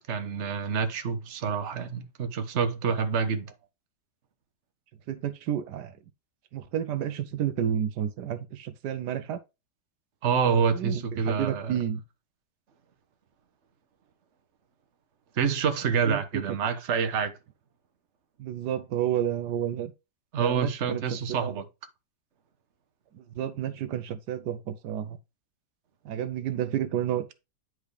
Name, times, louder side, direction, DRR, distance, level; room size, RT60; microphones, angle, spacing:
voice 1, 0.1-3.5 10.2-11.7 15.4-17.3 20.3-21.6, right 6 dB, 45° right, 1.2 m, -27 dB
voice 2, 5.1-6.0 6.5-9.4 10.7-12.0 15.9-16.6 18.4-19.9 20.4-21.6 23.1-25.2 26.0-27.3, right 10 dB, 80° right, 1.3 m, -31 dB
10.0 x 4.7 x 3.3 m
omnidirectional pair, 1.8 m